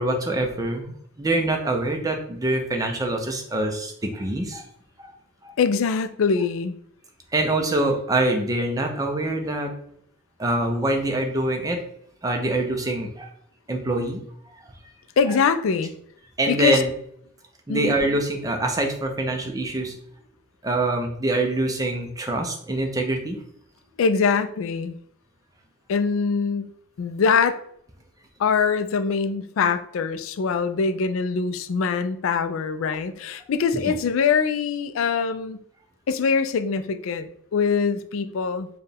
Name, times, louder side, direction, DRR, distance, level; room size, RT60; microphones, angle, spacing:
voice 1, 0.0-4.7 5.0-5.1 5.4-5.5 7.3-9.7 10.4-11.8 12.2-13.3 13.7-14.2 16.4-16.9 17.7-19.9 20.6-23.4, right 2 dB, 15° right, 3 dB, 0.5 m, -24 dB
voice 2, 5.6-6.7 15.2-15.9 16.5-16.8 17.7-18.0 24.0-25.0 25.9-26.7 27.0-27.6 28.4-35.6 36.1-38.7, left 5 dB, 70° left, 10 dB, 0.3 m, -23 dB
4.4 x 2.3 x 3.4 m, 0.67 s
head